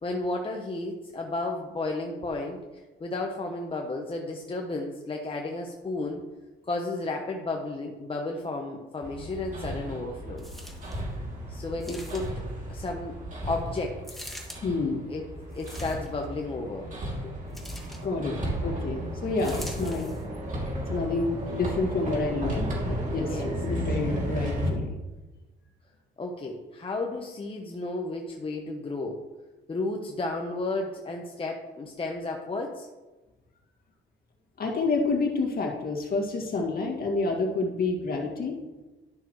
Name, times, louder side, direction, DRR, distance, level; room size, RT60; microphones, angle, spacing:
voice 1, 0.0-6.2 6.7-10.5 11.5-12.3 12.7-13.2 13.5-14.0 15.1-15.2 15.5-16.9 17.2-17.3 23.2-23.5 26.2-29.2 29.7-32.9, left 2 dB, 25° left, 1 dB, 1.0 m, -33 dB
Hammer, 9.0-24.7, equal, 40° right, 2.8 m, -34 dB
sound 1, 10.4-11.0 11.8-12.5 14.0-14.6 15.5-16.2 17.5-18.0 19.4-20.2 20.9-21.0, equal, ahead, 1.9 m, -44 dB
voice 2, 14.6-15.0 17.7-17.8 18.0-20.1 20.9-24.9 34.6-38.8, left 3 dB, 50° left, 1 dB, 2.1 m, -29 dB
12.0 x 6.0 x 3.2 m, 1.1 s
cardioid pair, 90°, 20 cm